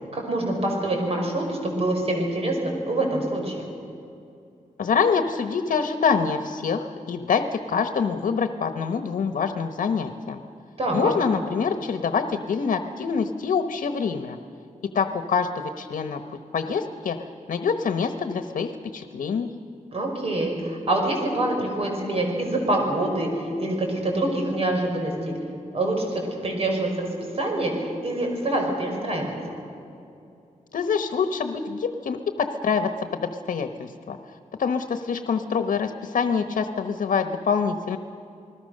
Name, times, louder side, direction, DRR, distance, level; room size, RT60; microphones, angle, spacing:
voice 1, 0.1-3.7 10.8-11.1 19.9-25.3 25.7-27.1 27.4-29.3, right 1 dB, 45° right, 1 dB, 5.6 m, -25 dB
voice 2, 4.8-10.4 10.9-14.4 14.9-16.2 16.5-19.5 30.7-34.2 34.6-38.0, left 6 dB, 85° left, 8 dB, 1.1 m, -25 dB
28.5 x 20.0 x 6.6 m, 2.6 s
wide cardioid pair, 130°, 14 cm